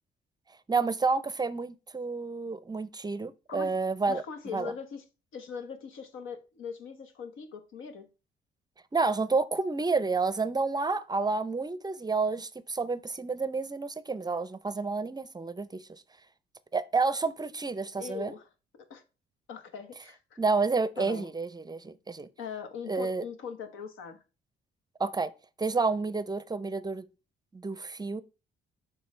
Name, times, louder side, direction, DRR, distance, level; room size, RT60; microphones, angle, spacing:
voice 1, 0.7-4.2 4.5-4.7 8.9-16.0 16.7-18.3 20.4-22.3 22.8-23.2 25.0-25.3 25.6-27.0 27.5-28.2, right 4 dB, 20° right, 0.5 m, -30 dB
voice 2, 4.1-5.0 5.3-8.1 18.0-18.5 18.9-19.0 19.5-20.4 21.0-21.3 22.4-24.2, left 6 dB, 85° left, 1.2 m, -41 dB
8.0 x 5.4 x 3.2 m
cardioid pair, 90°, 20 cm